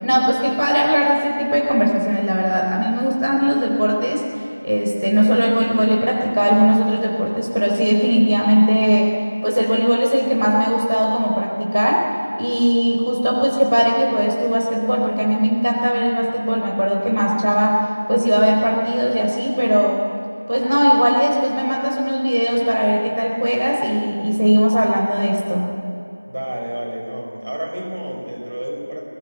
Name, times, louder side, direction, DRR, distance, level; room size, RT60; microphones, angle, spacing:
voice 1, 0.0-9.1 9.4-12.1 12.4-20.0 20.5-25.7, equal, 85° right, -1 dB, 4.4 m, -18 dB
voice 2, 26.3-29.1, equal, 55° right, -1 dB, 6.1 m, -29 dB
23.0 x 19.0 x 7.9 m, 2.8 s
figure-of-eight pair, 175°, 0 cm